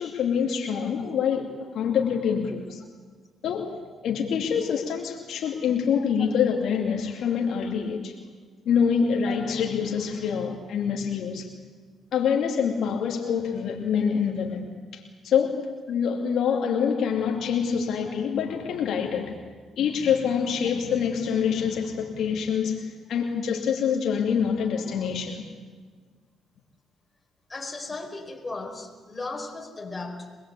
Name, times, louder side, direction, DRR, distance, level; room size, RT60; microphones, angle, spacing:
voice 1, 0.0-2.8 3.4-3.8 4.0-8.2 8.6-11.5 12.1-19.4 19.8-25.5, left 7 dB, 75° left, 1 dB, 2.7 m, -26 dB
voice 2, 27.5-30.4, left 3 dB, 20° left, 1 dB, 5.1 m, -36 dB
24.5 x 21.0 x 8.6 m, 1.5 s
cardioid pair, 90°, 0 cm